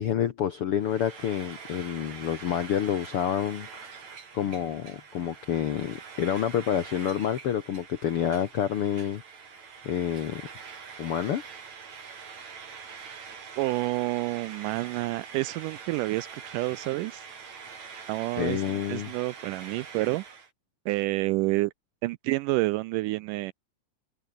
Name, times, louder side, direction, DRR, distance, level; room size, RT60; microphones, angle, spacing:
voice 1, 0.0-4.1 4.3-9.2 9.8-10.4 11.0-11.4 18.4-19.1, left 9 dB, 75° left, 1.3 m, -28 dB
Frying (food), 0.8-20.5, right 6 dB, 50° right, 4.6 m, -44 dB
voice 2, 13.6-17.3 18.1-20.2 20.9-21.7 22.0-23.5, right 19 dB, 80° right, 1.9 m, -29 dB
open air
omnidirectional pair, 4.1 m